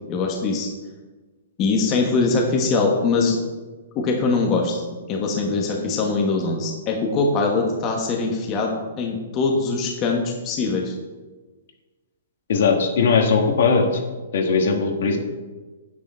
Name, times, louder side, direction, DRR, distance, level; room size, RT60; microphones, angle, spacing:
voice 1, 0.1-0.7 1.6-3.4 3.9-4.8 5.1-10.9, left 3 dB, 25° left, 0 dB, 1.3 m, -22 dB
voice 2, 12.5-14.0 14.3-15.2, left 4 dB, 60° left, 3 dB, 1.9 m, -19 dB
9.4 x 9.3 x 4.4 m, 1.3 s
hypercardioid pair, 165°, 0 cm